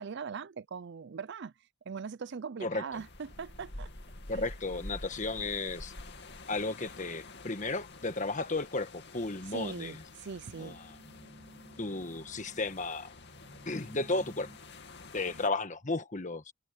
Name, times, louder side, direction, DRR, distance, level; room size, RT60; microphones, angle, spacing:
voice 1, 0.0-1.5 1.9-3.9 4.3-4.5 9.5-10.8, right 5 dB, 55° right, 0.5 m, -41 dB
sound 1, 2.9-15.5, left 2 dB, 55° left, 2.5 m, -48 dB
voice 2, 4.3-5.9 6.5-10.0 10.6-11.0 11.8-13.1 13.7-14.5 15.1-16.5, left 3 dB, 35° left, 1.5 m, -34 dB
sound 2, 10.0-14.6, equal, 35° right, 2.6 m, -57 dB
head